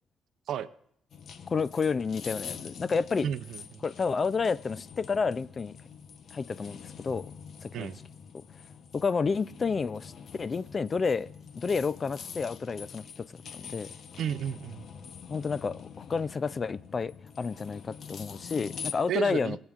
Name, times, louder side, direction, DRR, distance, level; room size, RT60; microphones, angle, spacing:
sound 1, 1.1-18.9, left 6 dB, 60° left, 0.8 m, -45 dB
voice 1, 1.5-3.3 3.8-5.8 6.3-7.3 7.6-7.9 8.9-10.1 10.4-11.3 11.5-13.3 13.5-13.9 15.3-19.6, left 5 dB, 35° left, 0.3 m, -30 dB
voice 2, 3.2-3.8 7.7-8.0 14.2-14.9 19.1-19.6, right 9 dB, 75° right, 0.6 m, -32 dB
22.0 x 8.9 x 2.4 m
cardioid pair, 90°, 0 cm